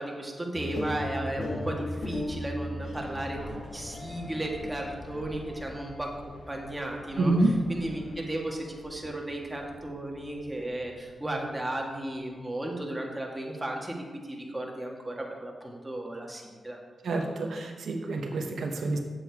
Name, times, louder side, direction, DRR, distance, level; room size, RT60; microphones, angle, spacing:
voice 1, 0.0-14.0 14.3-16.8, right 1 dB, 15° right, -1 dB, 1.9 m, -35 dB
sound 1, 0.5-11.5, left 1 dB, 60° left, 1.5 m, -38 dB
voice 2, 7.2-7.5 17.0-19.0, right 2 dB, 85° right, 2 dB, 0.9 m, -27 dB
7.8 x 7.8 x 4.8 m, 1.4 s
cardioid pair, 70°, 0 cm